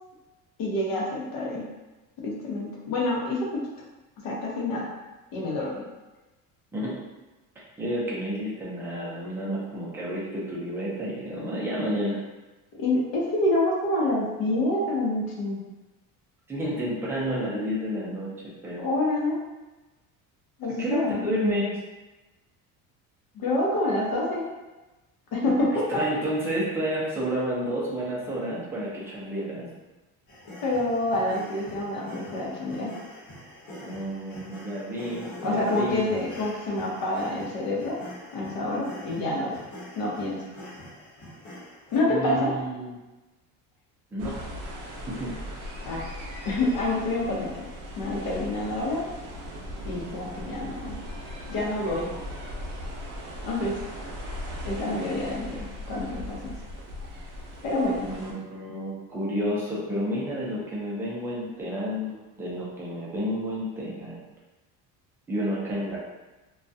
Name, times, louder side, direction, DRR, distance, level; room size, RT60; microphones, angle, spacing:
voice 1, 0.6-1.6 2.2-3.6 4.2-4.9 5.3-5.8 11.4-11.5 12.8-15.6 18.8-19.4 20.6-21.2 23.3-24.5 25.3-26.0 30.6-32.9 35.4-38.0 38.3-39.5 40.0-40.4 41.9-42.5 45.8-46.0 46.5-47.6 48.0-49.0 49.8-50.9 51.5-52.1 53.4-53.7 54.6-56.5 57.6-58.1, left 2 dB, 75° left, -3 dB, 0.8 m, -27 dB
voice 2, 7.8-12.2 16.5-18.3 18.6-18.8 20.8-21.8 25.9-29.7 33.8-36.0 42.1-43.0 44.1-44.3 45.1-45.3 58.0-64.2 65.3-66.1, equal, 5° right, -6 dB, 0.3 m, -30 dB
sound 1, 30.3-42.0, left 1 dB, 50° left, 1.0 m, -44 dB
sound 2, 44.2-58.3, equal, 55° right, 0.6 m, -38 dB
2.3 x 2.2 x 2.6 m, 1.1 s
cardioid pair, 160°, 36 cm